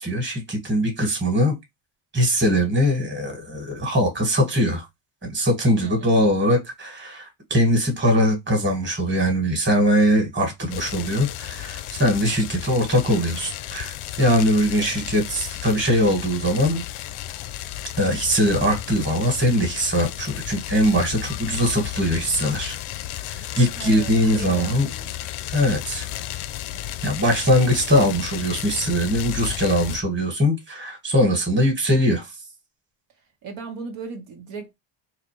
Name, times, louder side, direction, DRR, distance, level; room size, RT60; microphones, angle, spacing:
voice 1, 0.0-1.5 2.1-4.9 5.2-16.8 18.0-22.8 23.3-24.9 25.5-26.1 27.0-32.3, equal, 25° right, 1.5 m, -21 dB
voice 2, 5.8-6.2 14.8-15.1 23.8-25.1 33.4-34.7, right 4 dB, 85° right, 1.5 m, -37 dB
sound 1, 10.7-30.0, left 13 dB, 90° left, 0.6 m, -33 dB
4.0 x 2.6 x 3.1 m
cardioid pair, 130°, 48 cm